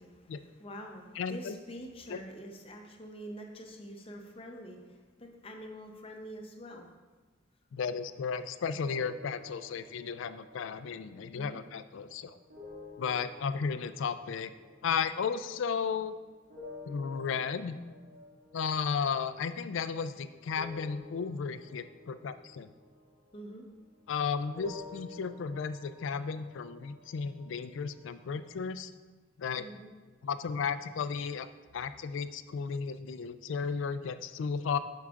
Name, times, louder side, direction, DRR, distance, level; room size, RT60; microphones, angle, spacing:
voice 1, 0.0-6.9 11.3-11.6 23.3-23.6 29.6-29.9, equal, 30° left, 2 dB, 0.7 m, -46 dB
voice 2, 1.2-1.6 2.1-2.2 7.7-12.4 13.0-14.5 14.8-16.1 16.8-17.8 18.5-22.7 24.1-28.9 29.4-29.6 30.2-31.5 31.7-34.8, left 6 dB, 70° left, 12 dB, 0.3 m, -34 dB
sound 1, 8.8-16.1 16.5-24.1 24.5-28.5, left 3 dB, 50° right, 2.1 m, -52 dB
12.0 x 4.7 x 2.5 m, 1.3 s
head